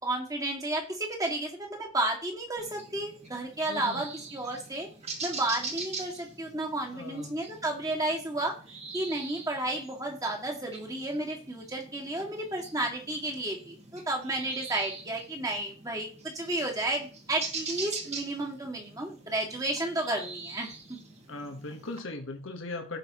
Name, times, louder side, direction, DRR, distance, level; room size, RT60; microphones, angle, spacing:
voice 1, 0.0-4.9 5.2-8.5 8.9-16.1 16.3-21.0, right 2 dB, 15° right, 0 dB, 2.1 m, -32 dB
sound 1, 2.6-22.0, right 4 dB, 35° right, 2.0 m, -43 dB
voice 2, 3.7-4.0 6.9-7.3 21.3-23.0, left 2 dB, 85° left, 3 dB, 1.4 m, -38 dB
16.0 x 5.6 x 3.0 m, 0.41 s
head